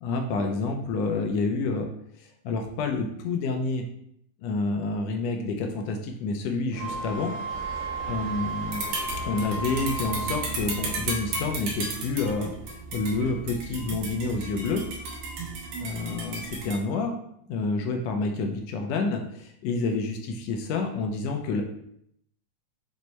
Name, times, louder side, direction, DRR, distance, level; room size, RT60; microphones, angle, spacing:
voice 1, 0.0-1.9 2.4-3.8 4.4-7.3 8.1-8.8 9.3-14.8 15.8-17.2 17.5-21.6, left 3 dB, 80° left, 4 dB, 1.5 m, -28 dB
sound 1, 6.7-11.8, equal, 25° right, 0.3 m, -43 dB
Wind instrument woodwind instrument, 6.8-10.5, right 3 dB, 65° right, 1.1 m, -34 dB
sound 2, 7.5-16.8, right 3 dB, 80° right, 2.3 m, -35 dB
6.2 x 2.1 x 4.0 m, 0.72 s
omnidirectional pair, 3.4 m